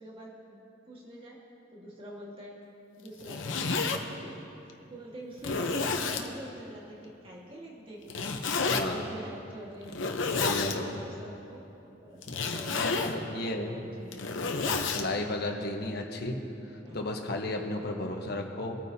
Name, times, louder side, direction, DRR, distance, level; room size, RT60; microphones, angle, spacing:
voice 1, 0.0-1.4 1.7-2.6 3.0-3.7 4.1-4.3 4.9-8.4 8.8-10.0 10.6-11.7 12.0-12.2 12.5-13.0 13.4-14.1 16.2-16.3 16.8-17.0 18.0-18.3, right 1 dB, 30° right, -4 dB, 1.7 m, -45 dB
Zipper (clothing), 3.1-4.0 4.7-4.8 5.4-6.3 8.1-8.8 9.9-10.8 12.2-13.2 13.9-15.0, left 4 dB, 75° left, 0.8 m, -30 dB
voice 2, 8.7-9.1 10.4-10.9 12.3-12.4 12.8-13.8 14.9-16.4 16.9-18.8, left 2 dB, 55° left, 2 dB, 1.1 m, -33 dB
21.5 x 9.2 x 2.8 m, 2.8 s
head